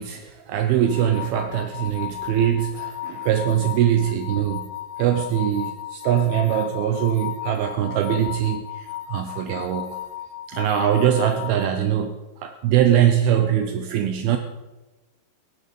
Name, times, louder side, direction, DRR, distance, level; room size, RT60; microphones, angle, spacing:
voice 1, 0.0-4.7 5.0-10.0 10.5-14.4, right 10 dB, 75° right, 7 dB, 2.4 m, -22 dB
sound 1, 0.9-11.7, left 12 dB, 75° left, 2.2 m, -35 dB
16.5 x 11.0 x 5.4 m, 1.1 s
omnidirectional pair, 4.8 m